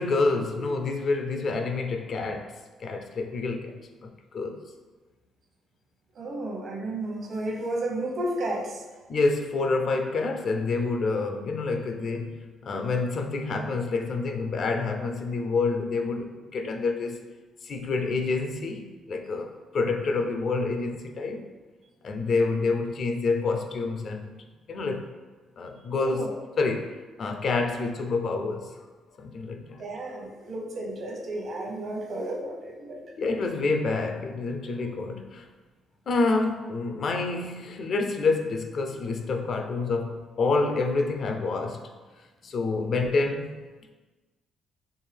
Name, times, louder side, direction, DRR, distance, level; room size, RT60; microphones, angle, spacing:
voice 1, 0.0-2.5 2.8-4.6 9.1-17.2 17.6-21.4 22.0-25.0 25.6-26.3 26.6-28.7 29.2-29.9 33.2-35.5 36.1-41.9 42.4-43.5, left 3 dB, 55° left, 5 dB, 0.4 m, -28 dB
voice 2, 6.2-8.8 26.0-26.3 29.8-33.0, right 1 dB, 55° right, 0 dB, 0.9 m, -32 dB
4.5 x 3.3 x 3.3 m, 1.3 s
cardioid pair, 90°, 0 cm